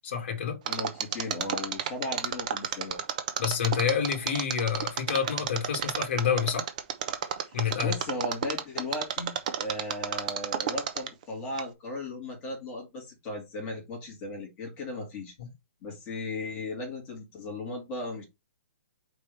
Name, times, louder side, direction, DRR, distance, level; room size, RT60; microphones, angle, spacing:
voice 1, 0.0-0.6 3.4-6.7 7.5-7.9 15.4-15.5, left 7 dB, 45° left, 2.0 m, -28 dB
voice 2, 0.6-3.0 7.4-15.3 15.8-18.2, left 2 dB, 15° left, 2.5 m, -36 dB
Mechanisms, 0.7-11.2 11.6-11.7, right 9 dB, 30° right, 0.8 m, -30 dB
5.0 x 4.4 x 5.1 m
hypercardioid pair, 175°, 8 cm